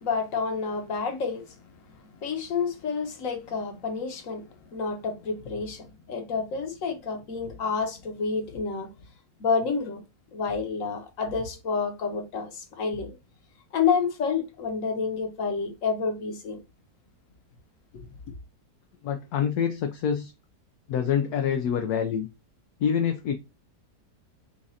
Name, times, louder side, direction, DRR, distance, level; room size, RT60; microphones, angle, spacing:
voice 1, 0.0-1.4 2.2-4.4 4.7-8.9 9.4-10.0 10.3-13.1 13.7-16.6 17.9-18.0, left 5 dB, 55° left, 1.4 m, -29 dB
voice 2, 19.0-20.3 20.9-22.3 22.8-23.3, left 8 dB, 70° left, 1.1 m, -26 dB
7.2 x 2.5 x 2.7 m
omnidirectional pair, 1.8 m